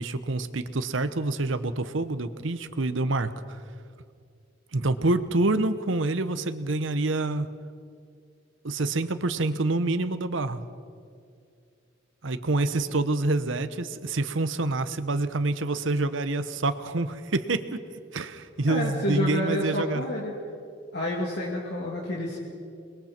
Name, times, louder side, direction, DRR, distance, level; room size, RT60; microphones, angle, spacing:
voice 1, 0.0-3.6 4.7-7.5 8.6-10.6 12.2-17.8 18.1-20.1, right 2 dB, 70° right, 11 dB, 0.9 m, -27 dB
voice 2, 18.7-20.3 20.9-22.4, left 1 dB, 55° left, -4 dB, 2.8 m, -29 dB
29.0 x 21.5 x 4.5 m, 2.3 s
head